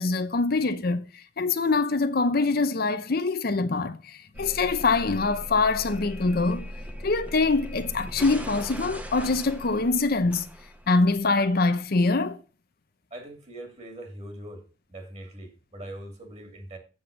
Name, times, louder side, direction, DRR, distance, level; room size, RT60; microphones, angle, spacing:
voice 1, 0.0-6.7 7.0-10.5 10.9-12.4, left 3 dB, 50° left, 0.7 m, -24 dB
sound 1, 4.3-11.2, equal, 10° right, 0.9 m, -39 dB
voice 2, 13.1-14.6 14.9-16.8, right 1 dB, 35° right, 2.7 m, -41 dB
7.9 x 7.4 x 5.1 m
head